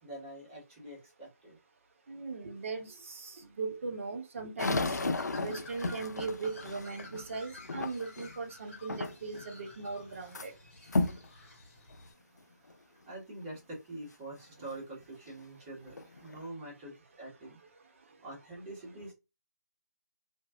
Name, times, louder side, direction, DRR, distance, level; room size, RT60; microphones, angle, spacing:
voice 1, 0.0-1.6 10.8-11.2 12.6-12.8 13.0-17.6 18.2-19.1, right 1 dB, 20° right, 1.6 m, -45 dB
voice 2, 2.1-5.0 5.4-10.5, right 4 dB, 45° right, 0.8 m, -39 dB
sound 1, 4.6-8.4 8.9-9.4 9.8-10.5 10.9-11.3 11.9-12.0 12.7-12.8 15.3-15.4 15.9-16.5, left 3 dB, 75° left, 0.4 m, -34 dB
Bird, 4.7-12.1, left 2 dB, 45° left, 1.4 m, -52 dB
sound 2, 4.7-7.3, right 2 dB, 75° right, 0.4 m, -50 dB
2.9 x 2.7 x 2.3 m
figure-of-eight pair, 150°, 9 cm